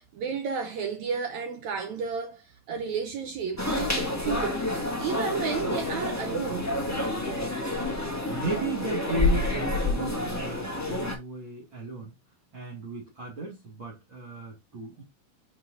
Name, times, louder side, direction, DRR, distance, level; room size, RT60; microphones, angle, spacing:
voice 1, 0.0-4.6 5.0-6.7, right 6 dB, 70° right, 2.0 m, -32 dB
sound 1, 3.6-11.1, left 2 dB, 10° left, 0.8 m, -29 dB
voice 2, 8.3-12.2 12.5-15.0, right 2 dB, 40° right, 2.6 m, -35 dB
10.5 x 4.8 x 2.7 m
omnidirectional pair, 3.8 m